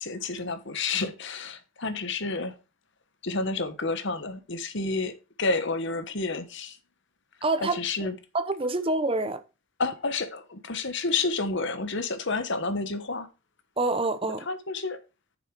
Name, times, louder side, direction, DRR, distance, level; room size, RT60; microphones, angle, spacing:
voice 1, 0.0-2.6 3.2-5.1 5.4-6.8 7.6-8.1 9.8-13.3 14.5-15.0, left 3 dB, 60° left, 1.2 m, -30 dB
voice 2, 7.4-7.8 8.3-9.4 13.8-14.4, right 2 dB, 25° right, 0.9 m, -26 dB
9.3 x 6.9 x 4.7 m
head